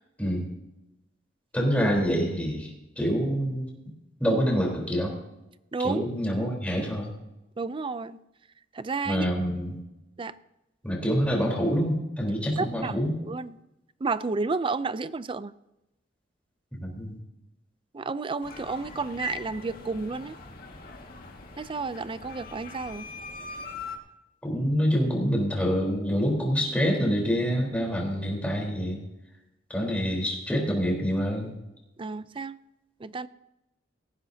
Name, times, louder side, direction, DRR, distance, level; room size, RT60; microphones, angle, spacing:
voice 1, 1.5-2.7 3.0-3.7 4.2-5.1 5.8-7.1 9.0-9.8 10.8-13.2 16.8-17.2 24.4-29.0 29.7-31.5, equal, 5° left, -1 dB, 3.8 m, -26 dB
voice 2, 5.7-6.0 7.6-8.2 8.7-9.3 10.2-10.3 12.6-13.0 13.3-13.6 14.0-15.5 17.9-20.4 21.6-23.1 32.0-32.6 33.0-33.3, right 4 dB, 30° right, 15 dB, 0.4 m, -31 dB
sound 1, 18.4-24.0, left 1 dB, 50° left, 1.8 m, -40 dB
18.5 x 15.0 x 2.8 m, 0.93 s
head